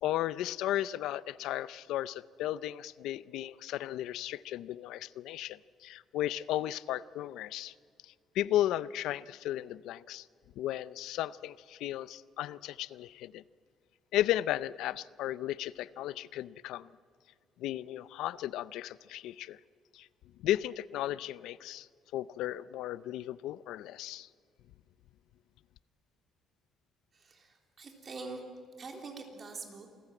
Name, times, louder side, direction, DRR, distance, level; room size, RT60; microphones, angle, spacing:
voice 1, 0.0-7.7 8.0-10.3 10.6-13.4 14.1-16.9 17.6-19.6 19.9-20.1 20.4-24.3, left 13 dB, 90° left, 18 dB, 0.5 m, -35 dB
voice 2, 27.1-28.4 28.8-29.9, right 3 dB, 35° right, 3 dB, 3.5 m, -44 dB
27.5 x 14.5 x 8.9 m, 2.2 s
cardioid pair, 135°, 0 cm